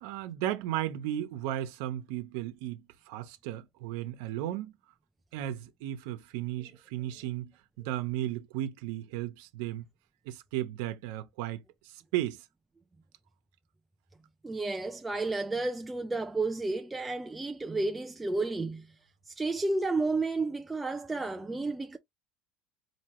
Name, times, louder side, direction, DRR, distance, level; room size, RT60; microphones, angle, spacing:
voice 1, 0.0-4.7 5.3-7.5 7.8-9.9 10.3-12.4, right 13 dB, 80° right, 0.9 m, -35 dB
voice 2, 14.4-18.9 19.3-22.0, right 3 dB, 10° right, 0.4 m, -31 dB
4.4 x 2.9 x 3.0 m
cardioid pair, 165°, 0 cm